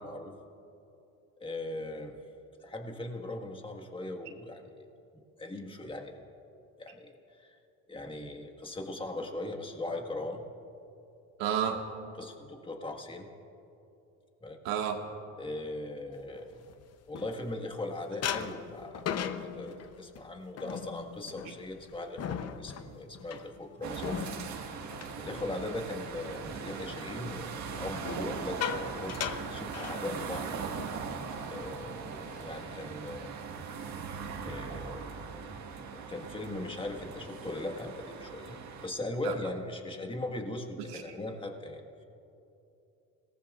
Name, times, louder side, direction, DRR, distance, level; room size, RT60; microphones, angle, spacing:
voice 1, 0.0-0.3 1.4-2.1 2.6-4.7 5.4-6.2 6.8-7.6 7.9-10.4 12.1-13.3 14.4-14.6 15.4-16.7 17.1-24.3 25.2-28.6 28.9-30.9 31.5-33.4 34.4-35.1 35.9-38.6 38.8-42.0, left 2 dB, 15° left, 3 dB, 1.6 m, -39 dB
voice 2, 11.4-11.8 14.7-15.0 39.2-39.3 40.9-41.0, right 9 dB, 85° right, 2 dB, 1.8 m, -30 dB
sound 1, 16.3-17.8 18.2-26.0 26.4-26.7 27.9-30.5 30.8-31.0 31.3-31.6 32.1-32.7, left 8 dB, 50° left, 0.8 m, -39 dB
sound 2, 23.8-38.9, right 5 dB, 55° right, 1.7 m, -40 dB
30.0 x 18.5 x 2.5 m, 2.8 s
cardioid pair, 115°, 33 cm